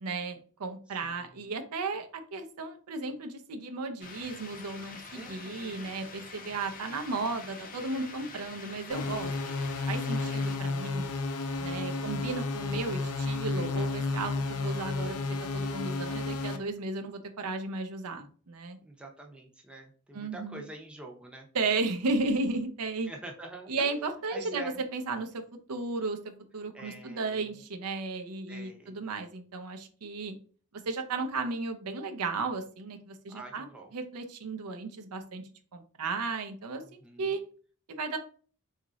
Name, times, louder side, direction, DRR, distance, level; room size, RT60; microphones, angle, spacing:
voice 1, 0.0-9.3 9.9-11.1 11.6-18.8 20.1-20.6 21.5-23.1 23.7-25.4 25.7-26.2 26.5-30.4 30.9-37.4 37.9-38.2, right 3 dB, 85° right, 7 dB, 0.6 m, -34 dB
voice 2, 1.0-1.5 5.1-5.9 10.2-10.5 11.7-12.2 18.8-21.5 23.1-24.0 24.3-24.8 26.7-27.5 28.5-29.0 33.3-33.9 36.8-37.3, right 2 dB, 5° right, 0 dB, 0.5 m, -46 dB
sound 1, 4.0-10.6, left 4 dB, 40° left, 0.5 m, -46 dB
sound 2, 8.9-16.6, left 3 dB, 90° left, 0.5 m, -32 dB
3.0 x 2.4 x 3.8 m, 0.42 s
head